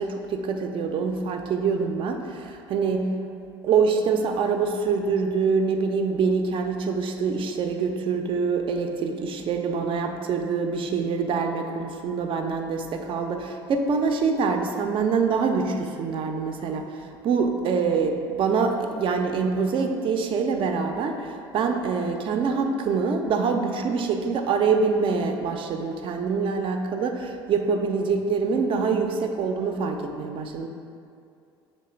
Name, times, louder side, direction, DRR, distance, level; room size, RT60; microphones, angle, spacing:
voice 1, 0.0-3.2 3.6-30.7, right 5 dB, 45° right, 4 dB, 0.4 m, -25 dB
3.2 x 3.0 x 4.3 m, 2.4 s
hypercardioid pair, 70°, 13 cm